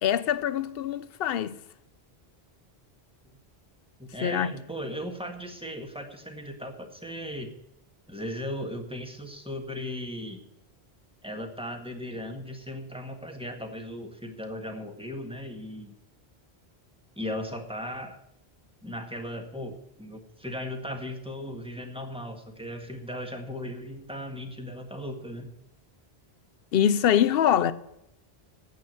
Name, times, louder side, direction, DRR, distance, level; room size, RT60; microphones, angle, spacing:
voice 1, 0.0-1.6 4.2-4.5 26.7-27.7, left 9 dB, 70° left, 0.9 m, -24 dB
voice 2, 4.0-7.5 8.1-10.4 11.2-16.0 17.2-18.2 18.8-25.5, equal, 5° right, 1.7 m, -37 dB
9.3 x 8.6 x 9.2 m
omnidirectional pair, 1.1 m